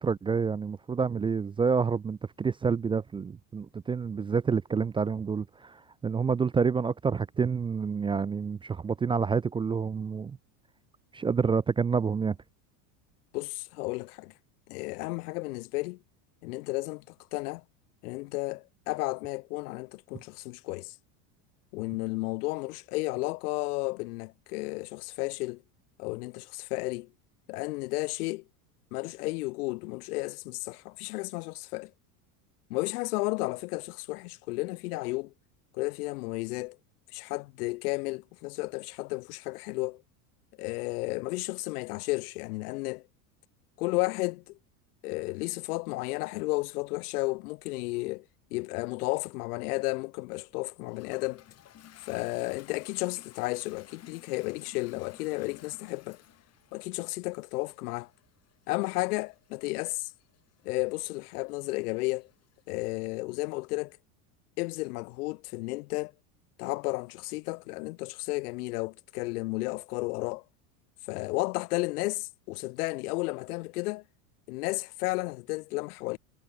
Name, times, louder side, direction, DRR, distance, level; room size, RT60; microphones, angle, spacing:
voice 1, 0.0-5.8 6.0-10.4 11.1-12.4, right 5 dB, 10° right, 0.4 m, -28 dB
voice 2, 13.3-14.3 14.7-16.0 16.4-17.6 18.0-20.9 21.7-25.6 26.0-27.1 27.5-28.4 28.9-31.9 32.7-35.3 35.7-36.8 37.1-40.0 40.6-43.0 43.8-44.6 45.0-48.2 48.5-51.4 52.0-56.2 56.7-58.1 58.7-60.1 60.6-62.3 62.7-63.9 64.6-66.1 66.6-70.4 71.1-74.0 74.5-76.2, left 23 dB, 80° left, 0.8 m, -33 dB
Toilet flush, 50.3-63.1, left 11 dB, 35° left, 3.6 m, -57 dB
supercardioid pair, 130°, 45 cm